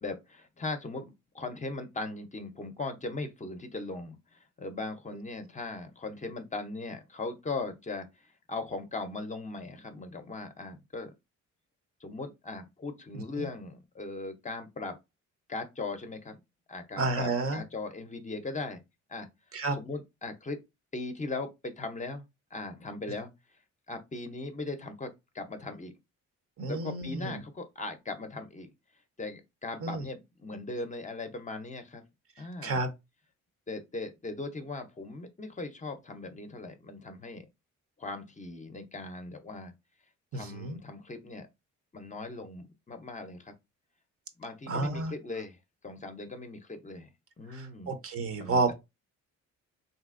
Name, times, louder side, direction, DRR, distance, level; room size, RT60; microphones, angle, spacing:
voice 1, 0.0-11.1 12.0-15.0 15.5-16.4 16.7-18.8 19.1-19.3 19.7-20.6 20.9-22.2 22.5-23.3 23.9-25.9 26.7-28.7 29.2-32.0 32.4-32.8 33.7-37.5 38.0-39.7 40.3-41.5 41.9-43.5 44.4-45.6 45.8-47.1 47.4-48.0 48.4-48.7, left 3 dB, 25° left, 0.5 m, -39 dB
voice 2, 17.0-17.6 19.5-19.8 26.6-27.4 29.8-30.0 32.6-32.9 40.3-40.8 44.7-45.1 47.5-48.7, right 3 dB, 50° right, 0.7 m, -30 dB
3.1 x 2.7 x 2.4 m
cardioid pair, 90°, 30 cm